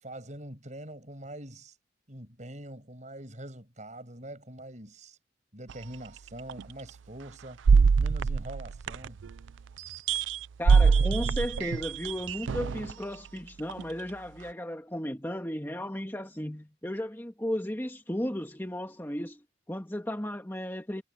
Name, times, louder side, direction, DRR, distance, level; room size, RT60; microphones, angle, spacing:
voice 1, 0.0-1.8 2.1-5.2 5.5-7.6 8.0-9.2, right 1 dB, 40° right, 7.2 m, -44 dB
sound 1, 5.7-5.8 6.5-6.6 7.6-9.3 9.8-12.9 13.7-13.8, right 5 dB, 80° right, 0.4 m, -23 dB
voice 2, 10.6-19.4 19.7-21.0, equal, 10° left, 1.7 m, -35 dB
head